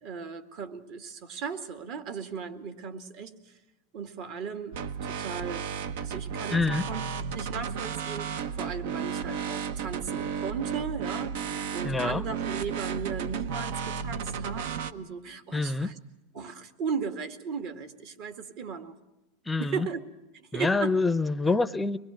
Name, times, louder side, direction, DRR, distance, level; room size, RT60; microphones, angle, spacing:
voice 1, 0.0-3.3 3.9-5.6 6.0-7.0 7.3-15.9 16.3-19.0 19.6-20.0 20.3-20.9, right 5 dB, 50° right, 7 dB, 2.0 m, -36 dB
sound 1, 4.7-14.9, right 7 dB, 70° right, 1.0 m, -33 dB
voice 2, 6.5-6.8 11.8-12.2 15.5-15.9 19.5-19.9 20.5-22.0, left 3 dB, 10° left, 12 dB, 0.6 m, -26 dB
24.5 x 21.0 x 6.4 m, 1.0 s
supercardioid pair, 155°, 0 cm